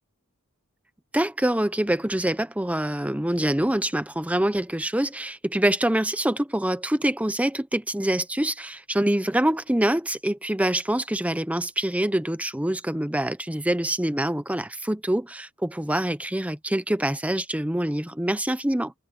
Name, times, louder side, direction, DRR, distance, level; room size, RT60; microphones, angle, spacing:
voice 1, 1.1-18.9, right 1 dB, 5° right, 0.8 m, -25 dB
head